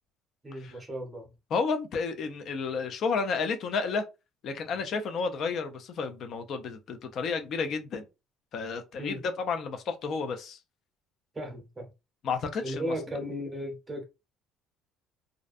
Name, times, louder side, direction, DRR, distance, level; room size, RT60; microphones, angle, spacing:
voice 1, 0.4-1.3 9.0-9.2 11.3-11.9 12.6-14.0, equal, 10° right, 0.8 m, -35 dB
voice 2, 1.5-4.0 4.4-8.0 8.5-10.6 12.2-12.9, left 5 dB, 45° left, 0.4 m, -31 dB
2.5 x 2.1 x 2.4 m
cardioid pair, 170°, 0 cm